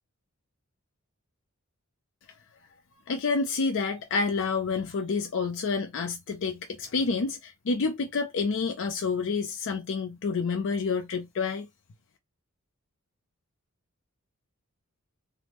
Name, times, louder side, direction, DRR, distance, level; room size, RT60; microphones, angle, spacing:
voice 1, 3.1-11.7, left 4 dB, 60° left, 0.5 m, -28 dB
3.5 x 2.0 x 3.0 m
head